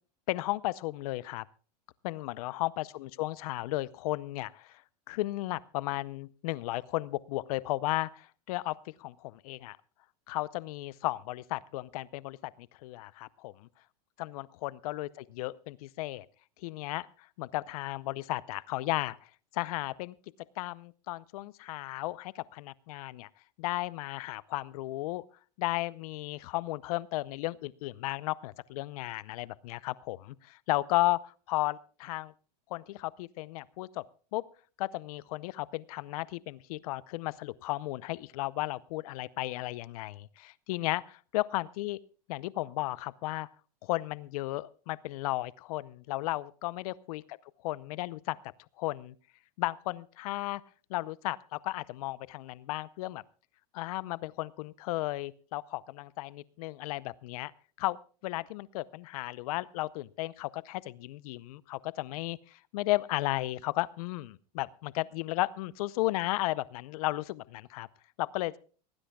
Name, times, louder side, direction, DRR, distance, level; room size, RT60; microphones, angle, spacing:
voice 1, 0.3-1.5 2.0-4.8 5.1-8.7 9.0-9.8 10.3-13.5 14.2-16.3 16.6-20.1 20.6-23.3 23.6-25.2 25.6-32.3 32.7-34.0 34.3-34.4 34.8-42.0 42.3-43.5 43.8-47.4 47.6-48.4 48.8-49.1 49.6-50.6 50.9-53.2 53.7-57.5 57.8-58.0 58.2-67.9 68.2-68.6, left 18 dB, 60° left, 19 dB, 0.6 m, -34 dB
19.0 x 18.5 x 2.3 m, 0.39 s
hypercardioid pair, 115°, 21 cm